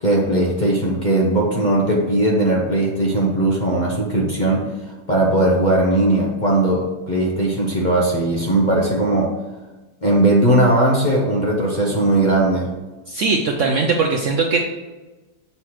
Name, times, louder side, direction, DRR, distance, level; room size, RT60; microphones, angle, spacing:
voice 1, 0.0-9.3 10.0-12.7, right 1 dB, 35° left, -3 dB, 0.8 m, -18 dB
voice 2, 13.1-14.6, right 4 dB, 65° right, 1 dB, 0.8 m, -19 dB
6.7 x 3.2 x 5.7 m, 1.2 s
omnidirectional pair, 1.8 m